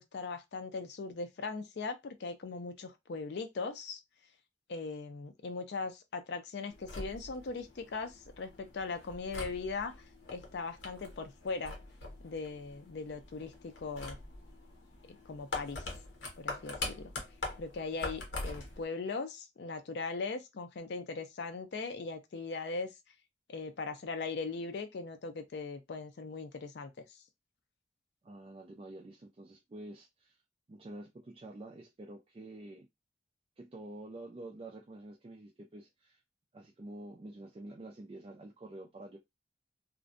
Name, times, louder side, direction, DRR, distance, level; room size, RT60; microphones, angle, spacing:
voice 1, 0.0-4.0 4.7-9.9 10.3-11.8 12.2-14.2 15.1-15.8 16.4-17.1 17.6-22.9 23.5-27.2, left 4 dB, 65° left, 0.4 m, -39 dB
sound 1, 6.7-18.8, left 3 dB, 85° left, 0.8 m, -44 dB
voice 2, 28.2-30.4 30.7-32.9 33.6-36.2 36.5-39.2, right 1 dB, 30° right, 0.3 m, -48 dB
2.5 x 2.1 x 2.5 m
head